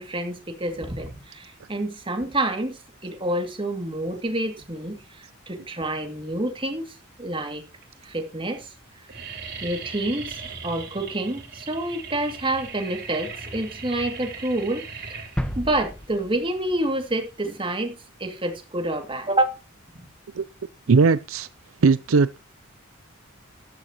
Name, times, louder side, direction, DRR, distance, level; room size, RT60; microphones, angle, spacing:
voice 1, 0.0-6.8 7.2-7.6 8.0-8.7 9.6-15.3 15.6-19.6 19.9-20.1, right 1 dB, 25° right, 2.5 m, -28 dB
sound 1, 6.5-7.1 7.7-7.8 8.1-8.5 8.7-17.7, right 5 dB, 50° right, 3.9 m, -39 dB
sound 2, 15.4-17.2 17.5-17.6, equal, 5° left, 1.2 m, -33 dB
voice 2, 20.9-21.5 21.8-22.4, right 4 dB, 75° right, 0.5 m, -18 dB
13.5 x 13.0 x 3.0 m
head